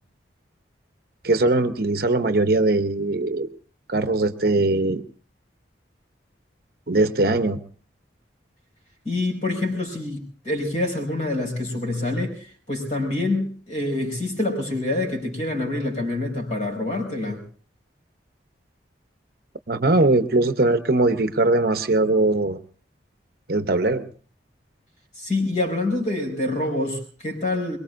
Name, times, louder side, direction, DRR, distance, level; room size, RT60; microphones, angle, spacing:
voice 1, 1.2-3.5 3.9-5.0 6.9-7.6 19.7-22.6 23.5-24.0, right 2 dB, 55° right, 9 dB, 0.8 m, -20 dB
voice 2, 9.0-17.4 25.2-27.8, left 2 dB, 40° left, 4 dB, 5.0 m, -26 dB
23.5 x 22.0 x 2.5 m, 0.41 s
head